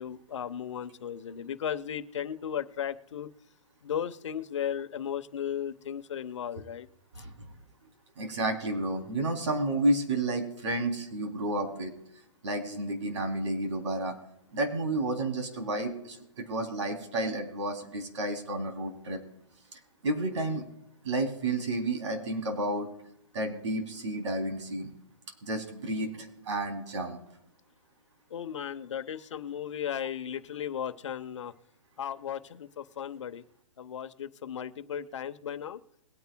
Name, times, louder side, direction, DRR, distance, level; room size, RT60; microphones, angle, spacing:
voice 1, 0.0-3.3 3.8-6.9 28.3-31.5 32.0-33.4 33.8-35.8, left 9 dB, 65° left, 9 dB, 1.0 m, -35 dB
voice 2, 7.1-7.5 8.2-11.9 12.4-14.1 14.5-19.2 20.0-20.6 21.0-22.9 23.3-24.9 25.4-27.2, right 2 dB, 65° right, 3 dB, 3.2 m, -31 dB
21.5 x 9.3 x 2.3 m, 0.80 s
hypercardioid pair, 165°, 16 cm